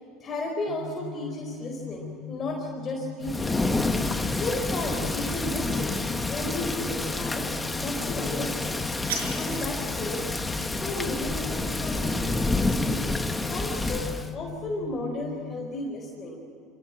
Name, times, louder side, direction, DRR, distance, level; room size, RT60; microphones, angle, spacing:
voice 1, 0.2-3.8 4.4-6.0 6.3-7.5 7.7-8.8 9.3-10.3 10.6-16.4, left 1 dB, 35° left, 0 dB, 4.6 m, -34 dB
sound 1, 0.7-15.7, left 8 dB, 50° left, 1.9 m, -41 dB
Thunder / Rain, 3.2-14.3, left 2 dB, 10° left, 1.6 m, -29 dB
sound 2, 8.7-9.7, right 5 dB, 85° right, 5.9 m, -35 dB
26.0 x 17.5 x 8.9 m, 2.6 s
supercardioid pair, 100°, 0 cm